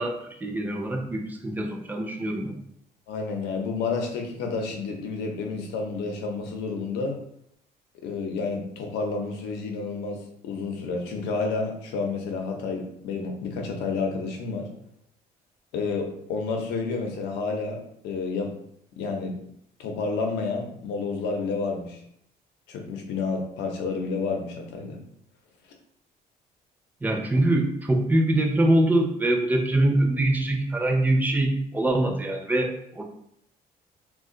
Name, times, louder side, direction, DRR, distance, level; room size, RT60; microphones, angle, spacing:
voice 1, 0.0-2.6 27.0-33.0, right 1 dB, 10° right, 1 dB, 0.5 m, -24 dB
voice 2, 3.1-7.2 8.0-14.7 15.7-18.5 18.9-19.4 19.8-22.0 22.7-25.0, left 4 dB, 85° left, 3 dB, 0.7 m, -30 dB
2.4 x 2.2 x 3.7 m, 0.74 s
cardioid pair, 110°, 17 cm